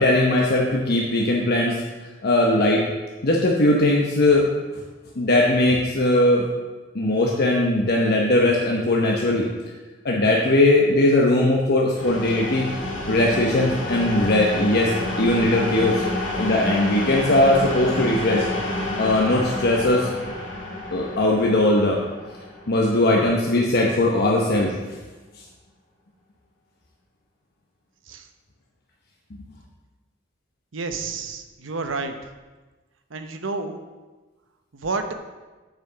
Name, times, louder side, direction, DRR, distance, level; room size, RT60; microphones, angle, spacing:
voice 1, 0.0-1.8 2.2-2.9 3.2-4.5 5.2-6.5 6.9-9.5 10.0-12.7 13.1-14.9 15.2-16.0 16.4-18.5 19.0-20.1 20.9-22.0 22.7-24.8, left 1 dB, 55° left, -2 dB, 0.9 m, -19 dB
sound 1, 11.9-23.6, left 1 dB, 75° left, 2.1 m, -29 dB
voice 2, 30.7-32.1 33.1-33.8 34.7-35.1, right 3 dB, 90° right, 7 dB, 0.8 m, -30 dB
7.9 x 5.0 x 6.7 m, 1.3 s
head